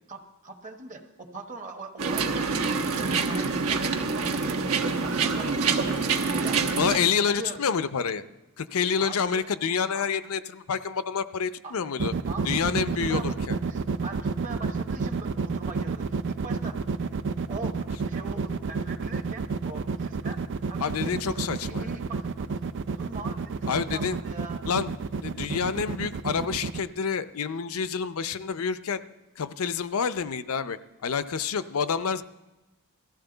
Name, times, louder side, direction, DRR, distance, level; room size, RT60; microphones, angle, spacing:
voice 1, 0.1-4.6 5.0-6.6 7.2-7.6 9.0-9.4 9.9-10.0 11.6-11.8 12.3-12.5 13.1-13.4 13.7-16.8 17.5-22.6 22.9-24.7, right 3 dB, 35° right, 5 dB, 1.1 m, -42 dB
sound 1, 2.0-7.0, right 4 dB, 70° right, 1.1 m, -26 dB
voice 2, 6.8-8.2 8.6-12.1 12.5-13.6 20.8-22.0 23.7-24.2 24.7-29.0 29.4-32.2, left 6 dB, 65° left, 13 dB, 0.5 m, -28 dB
sound 2, 12.0-26.8, right 5 dB, 55° right, 0.5 m, -29 dB
18.5 x 14.0 x 3.9 m, 1.1 s
head